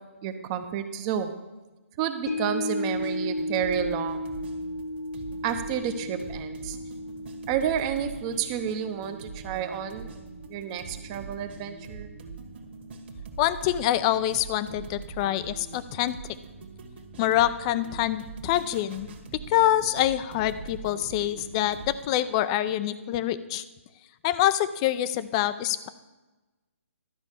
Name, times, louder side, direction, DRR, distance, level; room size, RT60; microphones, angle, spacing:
voice 1, 0.2-1.3 2.0-4.2 5.4-6.8 7.5-10.1 10.5-12.1, right 8 dB, 25° right, 9 dB, 0.7 m, -30 dB
sound 1, 2.3-12.6 13.0-13.1, left 1 dB, 80° left, 1.3 m, -36 dB
sound 2, 2.9-22.1, right 5 dB, 45° right, 1.6 m, -43 dB
voice 2, 13.4-16.2 17.2-19.1 19.5-23.6 24.2-25.9, left 13 dB, 25° left, 14 dB, 0.4 m, -25 dB
12.0 x 5.3 x 7.2 m, 1.2 s
hypercardioid pair, 150°, 8 cm